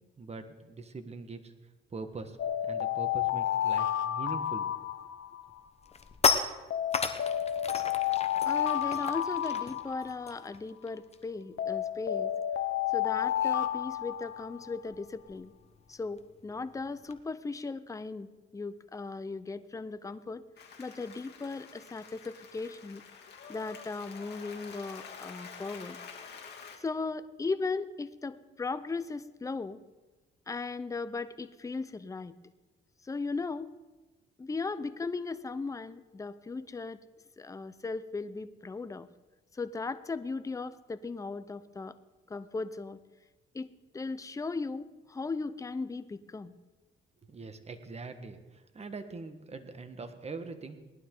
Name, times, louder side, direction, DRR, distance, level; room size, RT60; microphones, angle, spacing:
voice 1, 0.2-1.5 1.9-2.4 2.6-4.7 47.2-50.8, right 4 dB, 30° right, 8 dB, 1.4 m, -42 dB
sound 1, 2.4-5.6 6.7-10.5 11.6-14.8, left 11 dB, 75° left, 0.8 m, -31 dB
sound 2, 4.8-5.1 5.5-11.4 11.7-11.9 12.2-17.2, left 5 dB, 30° left, 1.0 m, -35 dB
voice 2, 8.4-12.3 12.9-15.5 15.9-20.4 20.8-23.0 23.5-26.0 26.8-29.8 30.5-32.4 33.0-33.7 34.4-37.0 37.4-39.1 39.5-42.0 42.3-43.0 43.5-46.5, left 4 dB, 15° left, 13 dB, 0.6 m, -37 dB
Applause, 20.6-26.8, left 6 dB, 55° left, 2.5 m, -48 dB
19.0 x 11.5 x 3.8 m, 1.2 s
cardioid pair, 90°, 20 cm